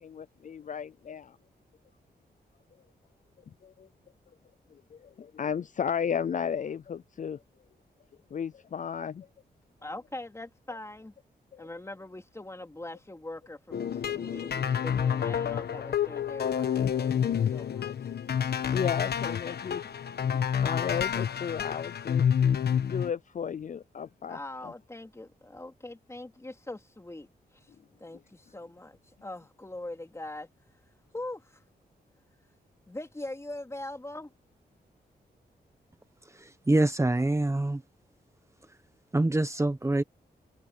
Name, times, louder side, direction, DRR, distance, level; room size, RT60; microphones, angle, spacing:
voice 1, 0.0-1.3 3.6-3.9 5.2-7.4 8.3-9.3 11.5-11.7 18.7-19.8 20.2-22.2 22.9-24.4 24.6-24.7, left 7 dB, 50° left, 0.5 m, -34 dB
voice 2, 9.8-11.1 11.6-17.9 24.3-27.3 28.0-30.5 31.1-31.6 32.9-34.3, left 2 dB, 15° left, 3.3 m, -42 dB
sound 1, 13.7-23.1, left 8 dB, 75° left, 1.3 m, -28 dB
voice 3, 36.3-37.8 39.1-40.0, right 2 dB, 15° right, 1.2 m, -25 dB
cardioid pair, 85°, 17 cm